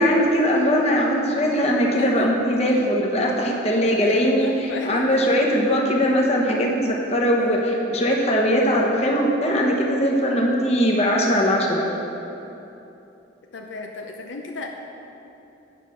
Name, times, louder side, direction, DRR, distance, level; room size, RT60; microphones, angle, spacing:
voice 1, 0.0-4.5 4.8-11.9, equal, 35° left, -1 dB, 1.1 m, -20 dB
voice 2, 2.0-2.3 4.0-4.1 4.4-5.2 13.5-14.7, left 3 dB, 75° left, 2 dB, 0.6 m, -35 dB
9.0 x 5.9 x 6.0 m, 3.0 s
head